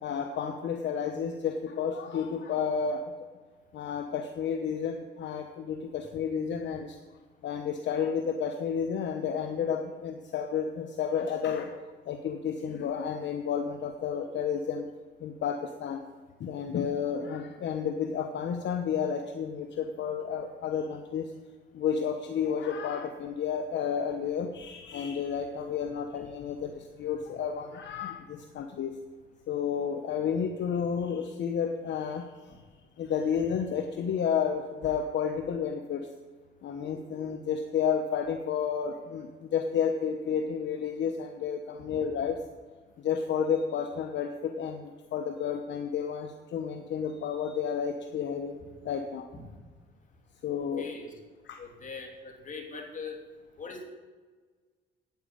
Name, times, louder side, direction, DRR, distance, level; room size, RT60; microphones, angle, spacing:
voice 1, 0.0-3.1 3.7-6.9 7.4-11.7 12.1-14.8 15.2-16.0 16.4-21.3 21.7-26.7 27.0-28.9 29.5-32.3 33.0-36.1 36.6-42.4 43.0-48.6 48.8-49.3 50.4-50.9 51.5-51.6, left 7 dB, 65° left, 6 dB, 0.9 m, -31 dB
voice 2, 50.8-51.1 51.6-53.2 53.6-53.8, left 4 dB, 40° left, 1 dB, 3.0 m, -41 dB
9.3 x 8.4 x 8.9 m, 1.4 s
cardioid pair, 90°, 20 cm